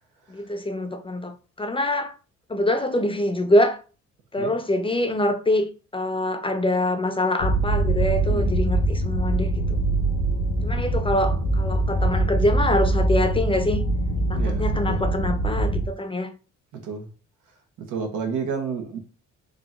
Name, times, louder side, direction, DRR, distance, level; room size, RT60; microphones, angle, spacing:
voice 1, 0.3-2.2 2.5-3.8 4.3-9.8 10.6-13.9 14.3-16.3, left 1 dB, 20° left, 0.6 m, -25 dB
sound 1, 7.4-15.9, right 1 dB, 90° left, 1.1 m, -23 dB
voice 2, 8.3-8.6 14.3-15.0 16.7-17.1 17.8-19.0, right 6 dB, 85° right, 1.3 m, -31 dB
3.9 x 2.8 x 3.6 m
cardioid pair, 90°, 30 cm